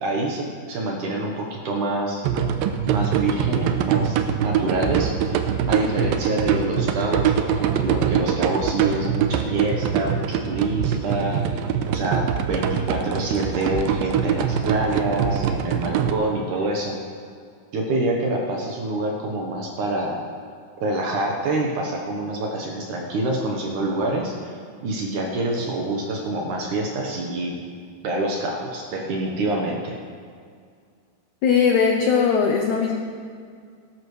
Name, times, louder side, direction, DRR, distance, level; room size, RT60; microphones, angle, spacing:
voice 1, 0.0-2.2 2.9-5.4 5.7-11.4 11.9-17.0 17.7-20.3 20.8-24.6 24.8-27.6 28.0-30.0, right 2 dB, 65° right, 0 dB, 2.2 m, -26 dB
sound 1, 2.2-16.1, right 8 dB, 85° right, 2.0 m, -23 dB
voice 2, 31.4-33.0, left 6 dB, 90° left, 1 dB, 1.6 m, -19 dB
17.5 x 12.5 x 3.3 m, 2.1 s
omnidirectional pair, 4.7 m